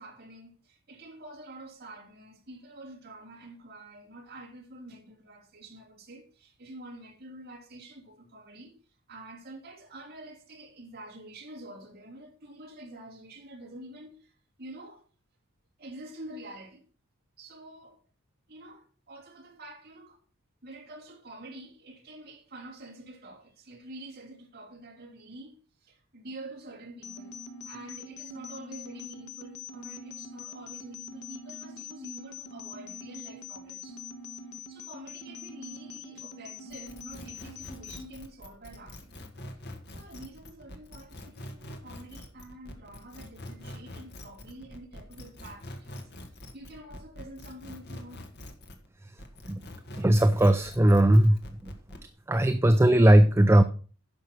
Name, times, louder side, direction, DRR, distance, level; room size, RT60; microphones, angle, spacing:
voice 1, 0.0-8.8 9.1-15.0 15.8-16.8 17.4-18.0 18.5-20.2 20.6-27.3 27.6-34.0 34.7-39.2 39.9-46.1 46.4-48.2, right 1 dB, 45° right, 3.1 m, -47 dB
sound 1, 27.0-38.0, left 4 dB, 75° left, 1.4 m, -44 dB
sound 2, 36.7-48.9 49.2-52.1, left 1 dB, 50° left, 1.9 m, -44 dB
voice 2, 50.0-51.7 52.3-53.6, right 1 dB, 10° right, 0.4 m, -19 dB
10.5 x 6.5 x 6.1 m
head